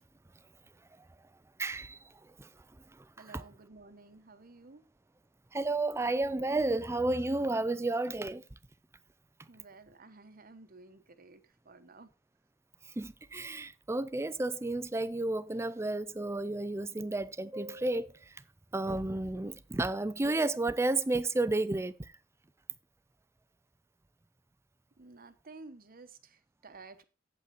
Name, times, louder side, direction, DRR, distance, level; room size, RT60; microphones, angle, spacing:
voice 1, 1.6-2.0 2.4-2.5 5.5-8.4 13.0-18.1 18.7-22.0, right 2 dB, 15° right, 0.4 m, -31 dB
voice 2, 3.2-4.8 9.5-12.1 25.0-27.0, right 3 dB, 45° right, 1.0 m, -53 dB
8.3 x 8.1 x 4.1 m
head